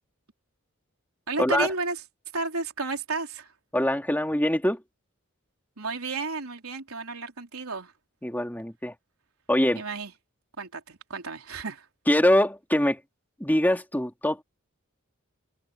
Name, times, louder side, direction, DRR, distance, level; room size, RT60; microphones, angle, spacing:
voice 1, 1.3-2.0 2.3-3.5 5.8-7.9 9.7-10.1 10.6-11.9, right 3 dB, 90° right, 3.8 m, -32 dB
voice 2, 3.7-4.8 8.2-8.9 9.5-9.8 12.1-13.0 13.4-14.4, left 1 dB, 10° left, 2.6 m, -23 dB
head